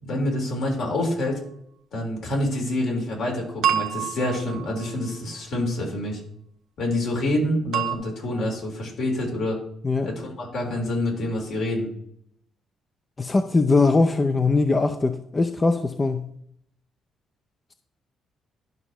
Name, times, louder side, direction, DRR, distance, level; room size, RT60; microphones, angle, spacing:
voice 1, 0.0-1.4 1.9-6.2 6.8-9.6 10.0-11.9, left 1 dB, 70° left, -1 dB, 3.5 m, -27 dB
sound 1, 3.6-5.2 7.7-8.0, right 10 dB, 85° right, 0.8 m, -27 dB
voice 2, 13.2-16.3, left 3 dB, 25° left, 7 dB, 0.6 m, -21 dB
12.0 x 5.5 x 3.1 m, 0.69 s
cardioid pair, 90°, 0 cm